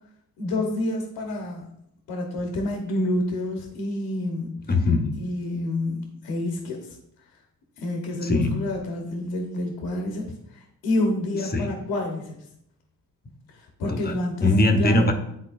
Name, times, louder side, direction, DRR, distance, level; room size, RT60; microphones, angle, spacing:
voice 1, 0.4-1.7 2.1-4.6 5.1-7.0 7.8-12.4 13.5-14.5 14.8-15.1, left 1 dB, 75° left, 1 dB, 1.3 m, -28 dB
voice 2, 4.7-5.1 8.2-8.6 11.5-11.7 13.9-14.1 14.4-15.1, left 2 dB, 25° left, 5 dB, 1.0 m, -21 dB
10.5 x 3.8 x 2.6 m, 0.77 s
supercardioid pair, 65°, 39 cm